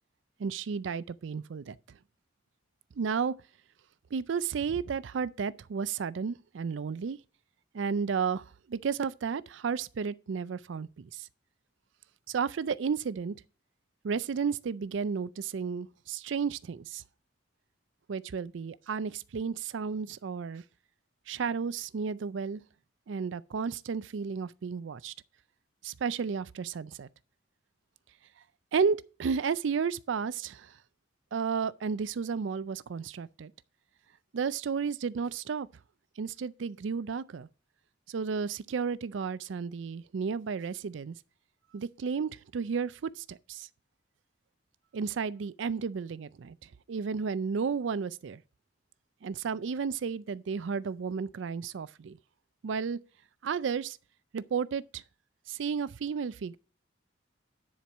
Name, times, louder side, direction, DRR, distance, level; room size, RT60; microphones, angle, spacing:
voice 1, 0.4-1.8 3.0-3.3 4.1-7.2 7.7-11.3 12.3-13.4 14.0-17.0 18.1-20.6 21.3-22.6 23.1-25.1 25.8-27.1 28.7-30.8 31.3-33.5 34.3-35.7 36.2-37.5 38.1-41.1 41.7-43.7 44.9-48.4 49.2-52.2 52.6-53.0 53.4-54.0 54.3-55.0 55.5-56.6, right 6 dB, 75° right, 0.4 m, -33 dB
10.0 x 4.5 x 6.1 m
head